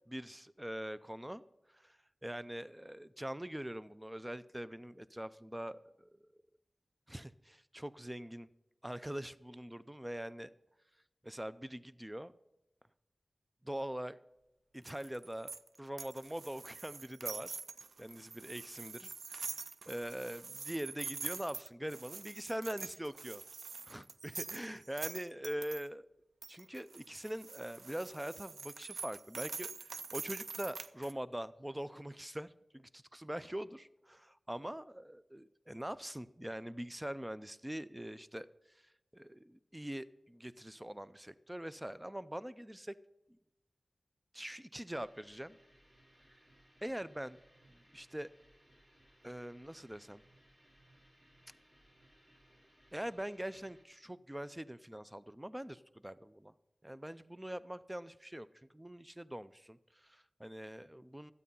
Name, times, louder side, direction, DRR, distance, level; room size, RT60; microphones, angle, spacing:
voice 1, 0.1-1.4 1.7-6.3 7.1-8.5 8.8-10.5 11.2-12.3 13.6-14.2 14.7-15.5 15.8-17.6 18.0-19.6 19.9-23.4 23.9-26.1 26.5-42.9 43.3-43.4 44.3-45.6 46.8-47.4 47.7-48.3 49.2-50.2 52.9-56.5 56.8-61.3, right 1 dB, 10° right, 16 dB, 0.4 m, -43 dB
sound 1, 14.8-25.8 26.4-31.1, right 4 dB, 85° right, 0.4 m, -45 dB
sound 2, 44.9-53.8, right 1 dB, 30° right, 3.8 m, -66 dB
12.5 x 8.4 x 5.4 m, 0.91 s
wide cardioid pair, 60°, 0 cm